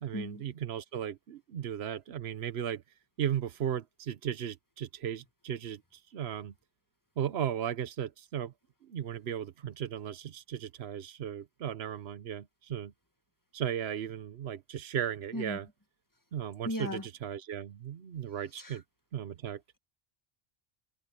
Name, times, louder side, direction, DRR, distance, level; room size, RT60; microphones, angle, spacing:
voice 1, 0.0-2.8 3.2-6.5 7.2-8.5 8.8-12.9 13.5-15.7 16.3-18.8 19.1-19.6, right 9 dB, 80° right, 1.1 m, -36 dB
voice 2, 16.7-17.1 18.6-18.8, left 1 dB, 20° left, 1.8 m, -36 dB
omnidirectional pair, 1.1 m